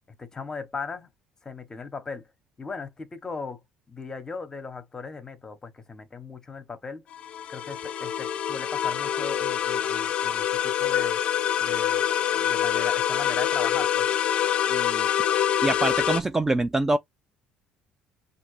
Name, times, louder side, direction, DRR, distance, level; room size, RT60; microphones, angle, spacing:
voice 1, 0.2-1.1 1.4-2.3 2.6-3.6 3.9-7.0 7.5-11.2 11.6-12.1 12.3-14.1 14.7-15.1, left 4 dB, 25° left, 1.0 m, -38 dB
sound 1, 7.1-16.2, left 10 dB, 50° left, 0.5 m, -25 dB
voice 2, 15.6-17.0, right 2 dB, 15° right, 0.4 m, -24 dB
5.7 x 2.6 x 3.1 m
cardioid pair, 100°, 2 cm